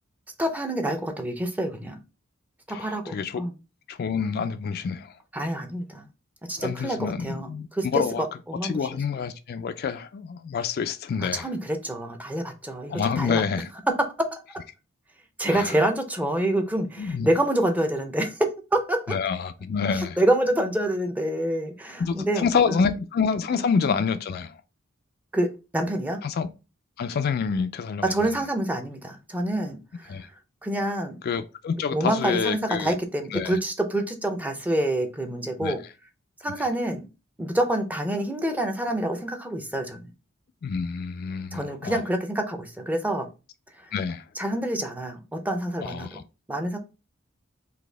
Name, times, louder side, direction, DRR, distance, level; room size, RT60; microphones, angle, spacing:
voice 1, 0.4-2.0 2.7-3.5 5.3-6.1 6.4-8.9 11.2-13.4 14.2-14.6 15.4-19.2 20.0-22.8 23.5-23.7 25.3-26.2 28.0-31.2 31.7-35.8 36.4-37.1 37.4-40.1 41.5-43.3 43.8-43.9 44.4-46.2 46.5-46.8, right 1 dB, 10° right, 0.5 m, -27 dB
voice 2, 2.7-3.4 3.9-5.1 6.6-7.7 7.9-8.2 8.6-11.5 12.9-13.7 15.5-15.7 17.0-17.3 19.1-20.2 22.0-24.6 26.2-26.5 27.0-28.1 30.1-30.3 31.2-33.0 33.3-33.6 35.6-35.8 40.6-42.0 43.9-44.2 45.8-46.2, left 6 dB, 50° left, 0.3 m, -27 dB
4.1 x 2.7 x 3.3 m
head